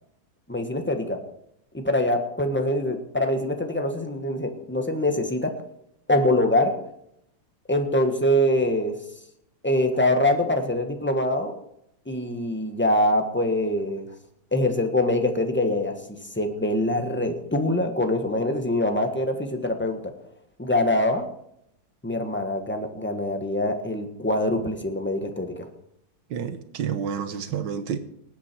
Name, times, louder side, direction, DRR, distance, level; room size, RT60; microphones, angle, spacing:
voice 1, 0.5-1.2 1.7-5.5 6.1-6.7 7.7-8.9 9.6-11.5 12.1-14.0 14.5-16.0 16.4-20.0 20.6-21.2 22.0-25.7, left 1 dB, 5° left, 5 dB, 1.2 m, -24 dB
voice 2, 26.3-28.0, right 7 dB, 75° right, 10 dB, 1.6 m, -29 dB
19.5 x 8.6 x 4.6 m, 0.75 s
omnidirectional pair, 2.1 m